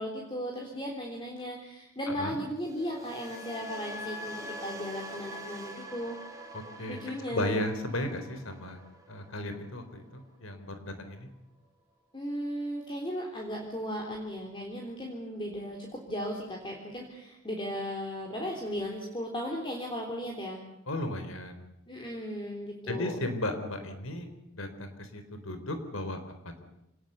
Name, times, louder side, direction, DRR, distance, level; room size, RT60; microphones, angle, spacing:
voice 1, 0.0-6.2 6.9-7.6 12.1-20.6 21.9-23.2, equal, 25° left, 0 dB, 3.7 m, -36 dB
voice 2, 2.1-2.4 6.5-7.0 7.3-8.8 9.1-11.3 20.9-21.6 22.9-24.3 24.5-26.2, left 1 dB, 90° left, 8 dB, 4.0 m, -35 dB
sound 1, 2.6-10.7 10.9-11.3, equal, 15° right, 3.9 m, -44 dB
26.0 x 19.5 x 8.2 m, 0.85 s
head